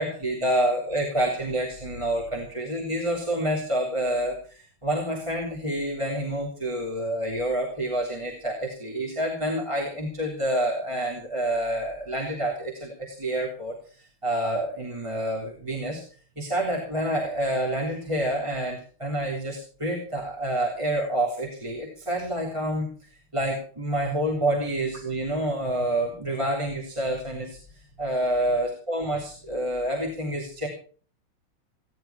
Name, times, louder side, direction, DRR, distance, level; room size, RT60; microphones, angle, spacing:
voice 1, 0.0-16.0 16.3-22.9 23.3-30.7, right 1 dB, 15° right, -2 dB, 3.5 m, -28 dB
17.5 x 11.0 x 5.8 m, 0.42 s
omnidirectional pair, 2.4 m